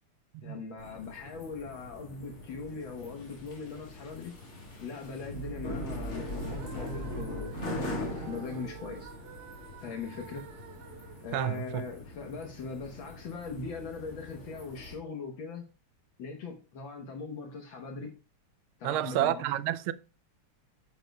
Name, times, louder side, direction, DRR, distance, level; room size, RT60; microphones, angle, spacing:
voice 1, 0.4-4.3 4.8-9.1 9.8-10.5 11.2-15.7 16.2-18.1 18.8-19.6, left 4 dB, 65° left, 1.8 m, -40 dB
sound 1, 0.8-14.9, left 1 dB, 45° left, 2.7 m, -41 dB
sound 2, 6.1-12.2, right 8 dB, 60° right, 1.2 m, -50 dB
voice 2, 11.3-11.8 18.8-19.9, right 13 dB, 80° right, 1.4 m, -29 dB
9.1 x 7.1 x 2.3 m
omnidirectional pair, 2.4 m